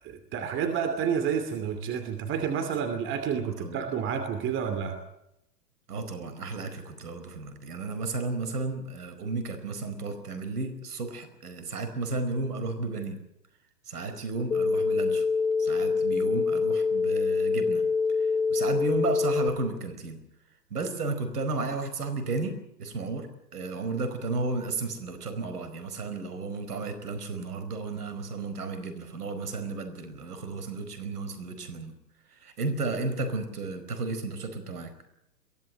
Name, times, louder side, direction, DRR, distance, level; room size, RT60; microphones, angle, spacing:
voice 1, 0.0-5.0, right 7 dB, 25° right, 7 dB, 2.7 m, -30 dB
voice 2, 3.4-3.8 5.9-13.2 13.9-15.2 15.6-17.8 18.2-20.2 20.7-31.9 32.3-34.9, right 3 dB, 70° right, 9 dB, 4.7 m, -33 dB
sound 1, 14.5-19.5, left 4 dB, 75° left, 3.7 m, -25 dB
23.0 x 17.0 x 8.8 m, 0.81 s
hypercardioid pair, 115°, 47 cm